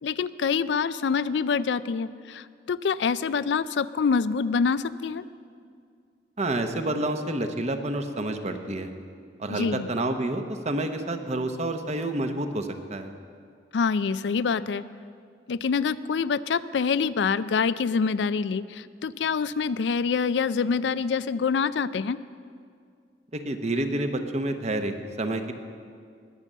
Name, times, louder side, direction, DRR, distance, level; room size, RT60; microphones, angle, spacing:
voice 1, 0.0-5.2 9.5-9.9 13.7-14.8 15.5-22.2, left 5 dB, 85° left, 15 dB, 0.4 m, -26 dB
voice 2, 6.4-8.9 9.4-13.1 23.3-25.5, right 1 dB, 40° right, 7 dB, 1.0 m, -29 dB
20.0 x 6.8 x 7.4 m, 2.2 s
head